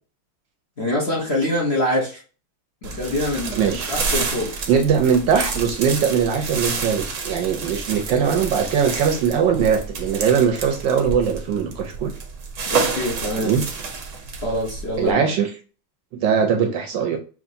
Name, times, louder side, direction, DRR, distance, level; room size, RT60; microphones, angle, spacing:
voice 1, 0.8-2.2 2.8-4.5 6.6-6.8 12.7-13.5 14.4-15.2, left 1 dB, 40° left, -2 dB, 0.9 m, -25 dB
sound 1, 2.8-15.1, right 4 dB, 55° right, 0.9 m, -29 dB
voice 2, 3.5-3.9 4.7-12.1 13.3-13.7 15.0-15.5 16.1-17.2, right 7 dB, 70° right, 5 dB, 1.2 m, -20 dB
6.1 x 2.9 x 2.7 m, 0.37 s
omnidirectional pair, 2.4 m